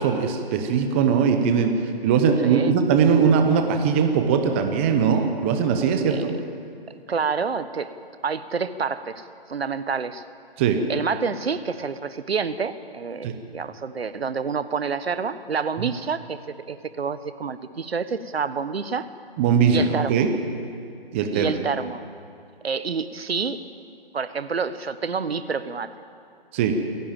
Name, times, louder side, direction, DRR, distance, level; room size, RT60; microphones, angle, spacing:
voice 1, 0.0-1.7 2.0-6.2 10.6-10.8 13.2-13.4 19.4-20.3 21.1-21.5 26.5-26.8, right 6 dB, 10° right, 6 dB, 0.7 m, -20 dB
voice 2, 2.4-2.7 6.1-6.2 6.9-7.9 8.2-10.2 10.9-16.4 16.7-19.1 19.7-20.2 21.3-22.0 22.6-23.6 24.1-25.9, right 5 dB, 80° right, 12 dB, 1.3 m, -28 dB
26.5 x 11.0 x 8.9 m, 2.5 s
hypercardioid pair, 160°, 30 cm